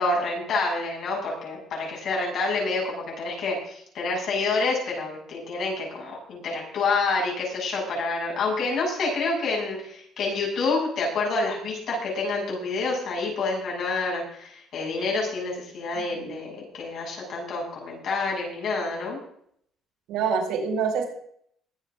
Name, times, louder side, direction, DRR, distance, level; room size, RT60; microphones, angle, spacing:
voice 1, 0.0-19.2, left 3 dB, 50° left, -2 dB, 7.7 m, -28 dB
voice 2, 20.1-21.0, right 6 dB, 90° right, 2 dB, 5.1 m, -26 dB
22.5 x 9.9 x 3.8 m, 0.65 s
cardioid pair, 160°, 0 cm